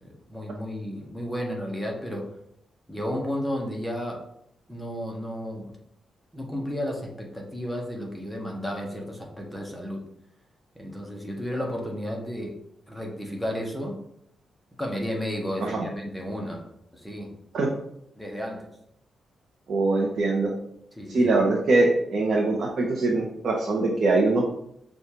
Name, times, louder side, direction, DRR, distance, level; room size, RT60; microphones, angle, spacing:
voice 1, 0.0-2.3 2.9-4.2 4.7-5.7 6.3-10.0 10.8-12.6 12.9-14.0 14.8-16.6 17.0-17.3 18.2-18.7 21.0-21.3, equal, ahead, -1 dB, 0.7 m, -32 dB
voice 2, 19.7-20.5 21.1-24.4, right 2 dB, 55° right, -1 dB, 0.6 m, -22 dB
6.3 x 2.3 x 2.8 m, 0.75 s
wide cardioid pair, 130°, 0 cm